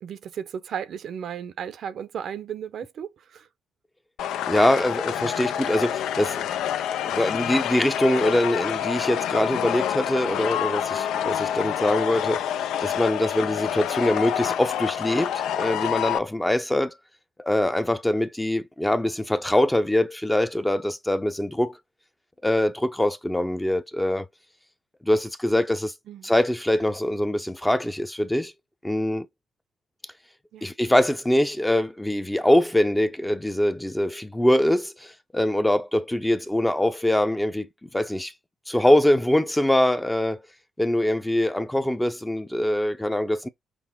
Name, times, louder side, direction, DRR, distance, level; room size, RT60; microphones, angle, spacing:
voice 1, 0.0-3.5 26.1-26.3 30.5-30.7, right 8 dB, 65° right, 0.6 m, -35 dB
sound 1, 4.2-16.2, left 10 dB, 80° left, 0.3 m, -27 dB
voice 2, 4.5-6.5 7.0-12.5 12.8-17.0 17.4-21.7 22.4-24.3 25.0-25.9 26.2-28.5 28.8-29.3 30.6-38.3 38.7-40.4 40.8-43.5, left 1 dB, 10° left, 0.5 m, -23 dB
6.0 x 2.1 x 3.5 m
cardioid pair, 90°, 0 cm